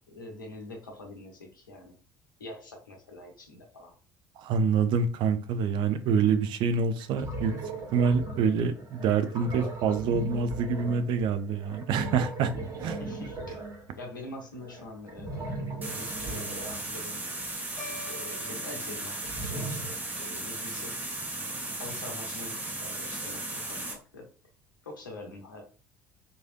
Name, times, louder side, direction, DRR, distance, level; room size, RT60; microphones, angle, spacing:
voice 1, 0.1-1.9 2.4-3.9 13.0-13.6 14.0-17.2 18.1-20.9 21.8-24.3 24.8-25.6, left 2 dB, 80° left, 1 dB, 0.8 m, -44 dB
voice 2, 4.4-7.5 7.9-12.5 12.8-13.0, right 5 dB, 50° right, 10 dB, 0.4 m, -26 dB
sound 1, 6.5-6.6 7.0-17.6 18.9-19.8, right 2 dB, 30° right, 1.2 m, -38 dB
sound 2, 15.8-24.0, right 2 dB, 15° right, 1.0 m, -36 dB
sound 3, 17.8-20.1, left 2 dB, 40° left, 1.3 m, -47 dB
3.1 x 2.7 x 2.6 m, 0.36 s
figure-of-eight pair, 60°, 10 cm